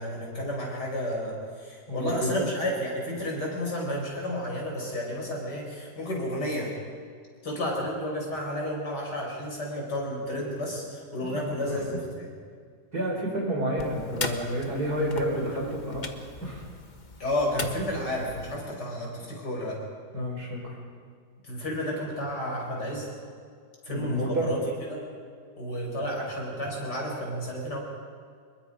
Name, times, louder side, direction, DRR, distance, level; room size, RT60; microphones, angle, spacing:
voice 1, 0.0-6.7 7.4-12.3 17.2-19.8 21.4-23.1 23.9-24.6 24.9-25.0 25.6-27.8, left 1 dB, 75° left, -1 dB, 6.0 m, -31 dB
voice 2, 1.9-2.3 11.2-11.8 12.9-16.1 16.4-16.6 20.1-20.7 23.9-24.5, equal, 65° right, -1 dB, 5.7 m, -30 dB
sound 1, 13.8-18.6, left 3 dB, 30° left, 1.3 m, -38 dB
26.5 x 22.0 x 5.2 m, 2.1 s
omnidirectional pair, 1.8 m